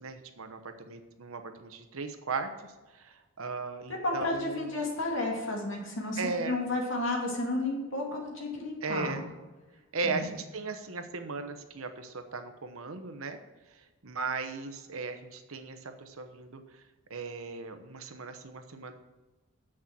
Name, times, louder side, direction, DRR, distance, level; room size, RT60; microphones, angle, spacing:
voice 1, 0.0-4.8 6.2-6.6 8.8-9.2 9.9-13.4 14.0-16.8 17.1-18.9, right 4 dB, 80° right, 7 dB, 1.0 m, -37 dB
voice 2, 3.9-9.2 10.0-10.3, left 2 dB, 60° left, -1 dB, 2.8 m, -32 dB
7.7 x 6.4 x 7.4 m, 1.2 s
head